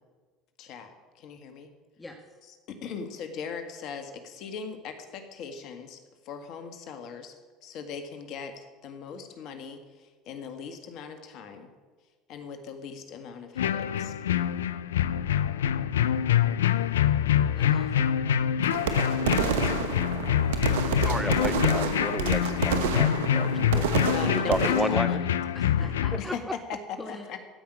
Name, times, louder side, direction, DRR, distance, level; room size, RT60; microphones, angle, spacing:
voice 1, 0.6-1.7 2.7-6.0 6.3-7.4 7.6-9.8 10.3-11.7 12.3-14.1 24.1-25.3 26.2-26.4 27.3-27.4, left 6 dB, 60° left, 7 dB, 1.9 m, -39 dB
voice 2, 2.0-2.4 17.5-18.1 25.5-26.4 27.0-27.3, left 2 dB, 15° left, 3 dB, 1.6 m, -44 dB
sound 1, 13.6-26.2, left 9 dB, 90° left, 0.5 m, -25 dB
sound 2, 18.7-24.9, right 7 dB, 80° right, 1.1 m, -29 dB
voice 3, 21.0-23.9 24.2-25.2, right 1 dB, 5° right, 19 dB, 0.5 m, -32 dB
16.0 x 5.9 x 9.9 m, 1.4 s
hypercardioid pair, 75°, 0 cm